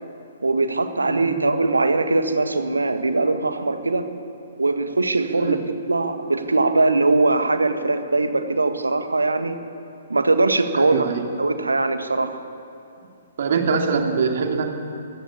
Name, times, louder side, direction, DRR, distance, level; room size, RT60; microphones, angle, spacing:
voice 1, 0.4-4.1 4.6-5.6 5.9-9.6 10.1-11.1 11.4-12.4, right 3 dB, 75° right, 9 dB, 1.6 m, -21 dB
voice 2, 10.8-11.2 13.4-14.7, right 5 dB, 50° right, 4 dB, 2.5 m, -23 dB
22.5 x 15.5 x 8.5 m, 2.7 s
figure-of-eight pair, 125°, 0 cm